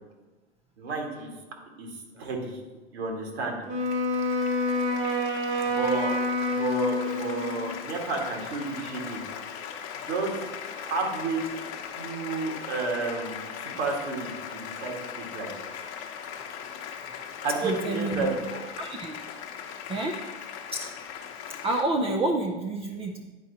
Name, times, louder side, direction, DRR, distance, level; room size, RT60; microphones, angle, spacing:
voice 1, 0.8-1.3 1.8-2.6 2.9-3.6 5.6-6.1 6.5-9.2 10.0-10.3 10.7-11.4 11.9-15.5 17.4-18.6, right 3 dB, 65° right, 0 dB, 2.2 m, -31 dB
Wind instrument woodwind instrument, 3.7-7.8, left 1 dB, 35° right, 1.5 m, -28 dB
Applause, 3.8-21.8, left 7 dB, 40° left, 1.0 m, -39 dB
voice 2, 17.6-18.3 18.8-19.2 19.9-20.2 20.7-20.9 21.6-23.2, right 2 dB, 15° right, 3 dB, 0.5 m, -29 dB
9.7 x 4.6 x 4.2 m, 1.2 s
hypercardioid pair, 110°, 34 cm